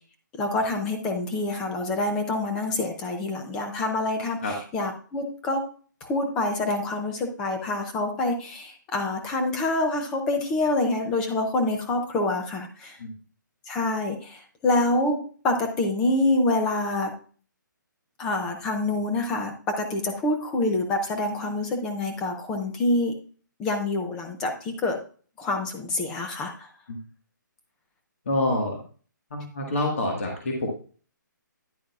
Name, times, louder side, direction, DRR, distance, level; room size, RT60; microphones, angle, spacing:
voice 1, 0.4-4.4 4.7-5.6 6.0-13.0 13.7-15.2 15.4-17.1 18.2-23.1 23.6-25.0 25.4-26.7, left 2 dB, 5° left, 4 dB, 0.4 m, -26 dB
voice 2, 28.2-28.8 29.3-30.7, left 1 dB, 40° left, 0 dB, 1.5 m, -27 dB
10.5 x 8.4 x 2.4 m, 0.41 s
hypercardioid pair, 180°, 11 cm